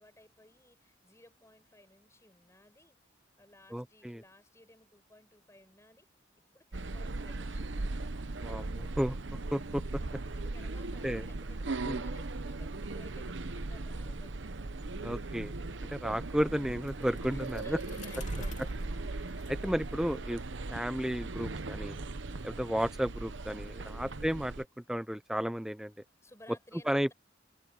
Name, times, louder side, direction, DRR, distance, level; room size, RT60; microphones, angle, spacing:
voice 1, 0.0-3.0 3.4-6.1 6.5-7.8 10.3-15.1 17.3-18.9 22.3-22.7 26.2-27.1, left 1 dB, 15° left, 7.3 m, -59 dB
voice 2, 3.7-4.2 8.4-9.2 9.5-9.8 11.0-11.3 11.8-12.0 15.0-15.5 15.9-17.8 19.5-20.4 20.7-22.0 22.4-25.9 26.9-27.1, equal, 5° right, 0.5 m, -33 dB
sound 1, 6.7-24.6, right 2 dB, 75° right, 0.9 m, -38 dB
Bicycle, 16.7-20.5, left 7 dB, 40° left, 2.7 m, -53 dB
head